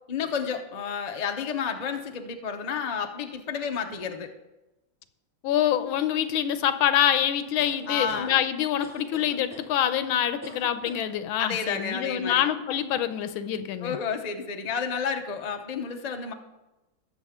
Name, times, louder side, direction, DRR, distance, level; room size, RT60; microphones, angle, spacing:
voice 1, 0.1-4.3 7.9-8.4 11.4-12.5 13.8-16.3, left 6 dB, 55° left, 5 dB, 0.4 m, -31 dB
voice 2, 5.4-14.0, left 10 dB, 90° left, 11 dB, 1.5 m, -26 dB
sound 1, 7.6-8.3 8.8-9.7 10.4-11.1, left 1 dB, 10° right, 1.7 m, -42 dB
20.0 x 7.1 x 3.6 m, 1.0 s
omnidirectional pair, 2.2 m